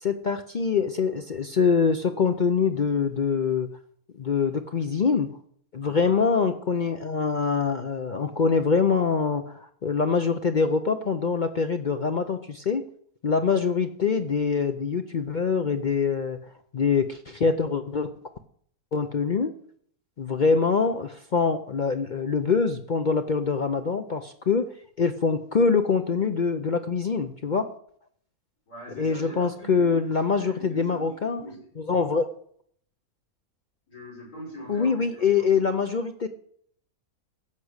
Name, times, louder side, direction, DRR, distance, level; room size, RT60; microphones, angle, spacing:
voice 1, 0.0-3.7 4.2-5.3 5.7-12.8 13.2-16.4 16.7-18.1 18.9-19.5 20.2-24.7 25.0-27.7 29.0-31.4 31.8-32.3 34.7-36.3, left 5 dB, 50° left, 8 dB, 0.6 m, -24 dB
voice 2, 5.8-6.1 28.7-31.7 33.9-35.8, equal, 85° left, -4 dB, 7.1 m, -42 dB
15.0 x 6.2 x 8.0 m, 0.64 s
omnidirectional pair, 1.5 m